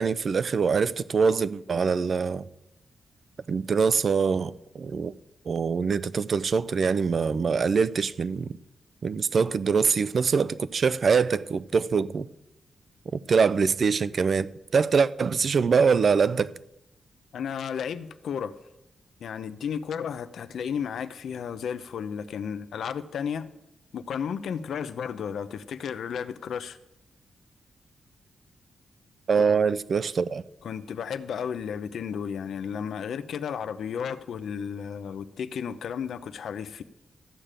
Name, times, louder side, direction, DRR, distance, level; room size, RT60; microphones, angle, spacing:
voice 1, 0.0-2.4 3.5-5.1 5.5-8.5 9.0-12.3 13.3-16.5 29.3-30.4, right 5 dB, 45° right, 0.5 m, -24 dB
voice 2, 17.3-18.5 19.2-23.5 23.9-26.8 29.4-29.5 30.6-36.8, left 7 dB, 85° left, 0.7 m, -33 dB
14.0 x 6.7 x 8.9 m
wide cardioid pair, 155°, 0 cm